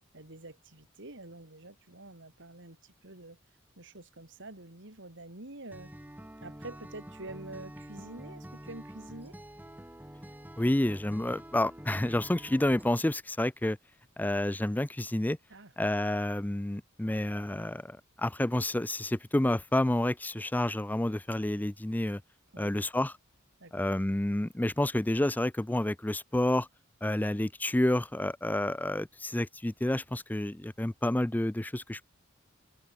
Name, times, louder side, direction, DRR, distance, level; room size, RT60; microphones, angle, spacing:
voice 1, 0.1-3.4 3.8-5.9 6.4-9.3 15.5-15.9 22.5-22.7 23.6-23.7, right 2 dB, 65° right, 4.4 m, -47 dB
Acoustic guitar, 5.7-12.9, right 1 dB, 10° right, 1.4 m, -47 dB
voice 2, 10.6-13.8 14.2-15.4 15.8-22.2 22.6-23.1 23.7-26.7 27.0-32.1, left 1 dB, 10° left, 0.5 m, -29 dB
open air
head